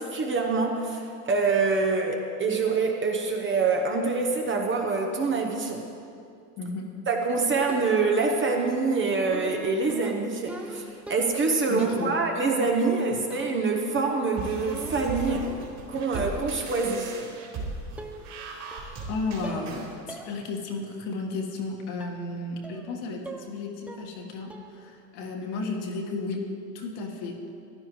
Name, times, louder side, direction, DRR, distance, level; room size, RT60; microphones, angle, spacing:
voice 1, 0.0-5.8 7.1-15.6 15.9-17.2, right 4 dB, 25° right, 2 dB, 0.9 m, -25 dB
voice 2, 6.6-6.9 11.7-12.2 13.1-13.2 19.1-26.5 26.7-27.4, left 3 dB, 55° left, 1 dB, 1.7 m, -33 dB
sound 1, 7.7-8.2 9.3-11.5 11.8-12.4 13.3-13.7 14.0-15.8 16.2-16.5 17.5-17.6 18.0-18.4 18.7-19.1 19.4-19.8 20.1-20.3 20.7-20.8 22.0-22.2 22.6-22.9 23.3-23.6 23.9-24.2 24.5-24.8, right 1 dB, 5° right, 0.4 m, -42 dB
sound 2, 14.4-19.9, right 3 dB, 50° right, 2.7 m, -37 dB
15.0 x 10.5 x 3.2 m, 2.5 s
supercardioid pair, 110°, 49 cm